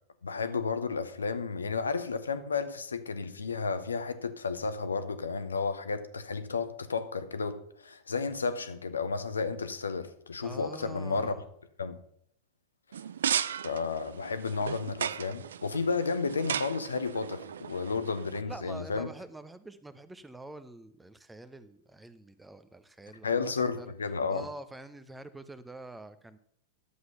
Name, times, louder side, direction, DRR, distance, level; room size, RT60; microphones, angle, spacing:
voice 1, 0.2-11.3 11.8-12.0 13.6-19.1 23.2-24.5, left 4 dB, 75° left, 0.9 m, -32 dB
voice 2, 10.4-11.4 18.4-23.9 24.3-26.4, right 2 dB, 5° right, 0.8 m, -46 dB
sound 1, 12.9-18.4, right 8 dB, 65° right, 0.4 m, -36 dB
11.5 x 7.9 x 5.6 m
figure-of-eight pair, 90°, 0 cm